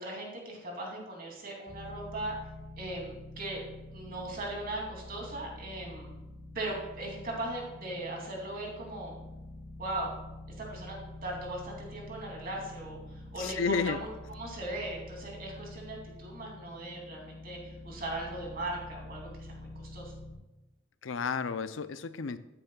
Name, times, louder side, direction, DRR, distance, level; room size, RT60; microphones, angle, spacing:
voice 1, 0.0-2.3 2.8-3.6 3.9-6.1 6.5-9.1 9.8-10.1 10.6-11.0 11.2-20.1, right 1 dB, 50° right, -1 dB, 2.9 m, -38 dB
sound 1, 1.7-20.4, left 1 dB, 80° right, 3.9 m, -47 dB
voice 2, 13.4-14.0 21.0-22.4, left 5 dB, 80° left, 12 dB, 0.6 m, -31 dB
13.0 x 9.9 x 2.4 m, 1.0 s
head